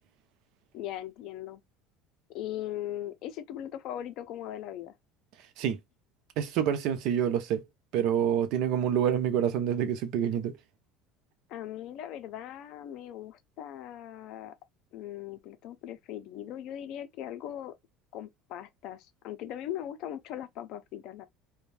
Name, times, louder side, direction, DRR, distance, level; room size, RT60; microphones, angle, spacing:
voice 1, 0.7-1.6 2.3-4.9 11.5-14.5 14.9-17.8 18.1-21.3, left 11 dB, 55° left, 0.5 m, -39 dB
voice 2, 6.4-7.6 7.9-10.6, right 9 dB, 60° right, 0.5 m, -27 dB
2.5 x 2.2 x 3.2 m
cardioid pair, 145°, 0 cm